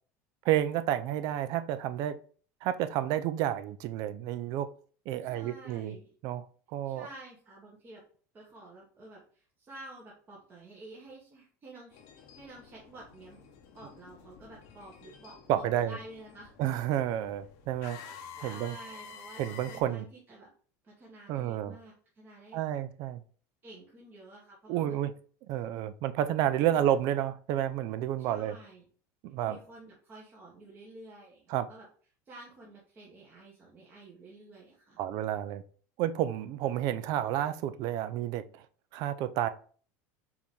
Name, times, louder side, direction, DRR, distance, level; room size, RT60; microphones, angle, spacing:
voice 1, 0.4-2.2 2.6-4.7 5.1-6.0 6.2-6.4 6.7-7.1 15.5-16.0 16.6-18.1 18.4-18.8 19.4-20.1 21.3-21.8 22.5-23.2 24.7-25.1 25.5-28.6 29.2-29.6 31.5-31.7 35.0-35.6 36.0-38.6 38.9-39.5, right 11 dB, 55° right, 0.4 m, -30 dB
voice 2, 5.2-6.1 6.8-8.0 8.3-13.4 13.7-16.5 17.9-20.5 20.8-22.6 23.6-25.1 26.7-26.9 28.2-28.9 29.4-31.9 32.3-35.0, right 2 dB, 25° right, 1.1 m, -50 dB
sound 1, 11.9-19.8, left 6 dB, 65° left, 0.9 m, -50 dB
4.7 x 2.7 x 3.5 m
supercardioid pair, 140°, 8 cm